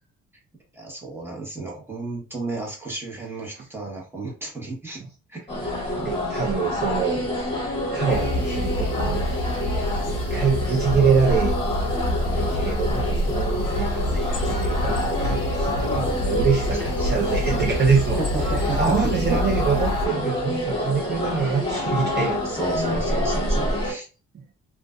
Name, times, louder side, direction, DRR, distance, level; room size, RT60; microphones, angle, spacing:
voice 1, 0.7-5.0 5.3-5.9 15.9-16.2 16.8-17.3 18.2-18.8 19.3-19.4 22.4-24.1, right 3 dB, 10° right, 1.1 m, -33 dB
sound 1, 5.5-23.9, left 1 dB, 15° left, 1.2 m, -27 dB
voice 2, 6.0-7.2 7.9-9.3 10.1-11.6 12.4-18.2 18.5-22.5 23.4-23.8, right 6 dB, 35° right, 0.6 m, -25 dB
sound 2, 8.1-20.1, left 1 dB, 60° left, 0.5 m, -27 dB
2.4 x 2.3 x 2.4 m
cardioid pair, 90°, 30 cm